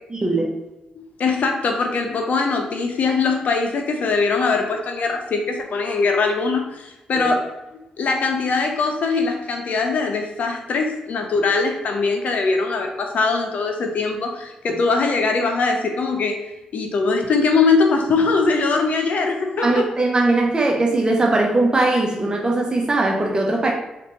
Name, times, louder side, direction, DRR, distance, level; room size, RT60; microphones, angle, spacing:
voice 1, 0.1-0.5 7.1-7.3 19.6-23.7, right 2 dB, 30° right, 0 dB, 1.0 m, -20 dB
voice 2, 0.9-7.4 8.0-16.4 16.7-19.8, left 4 dB, 65° left, 3 dB, 0.6 m, -21 dB
4.1 x 2.5 x 3.1 m, 0.95 s
supercardioid pair, 50°, 3 cm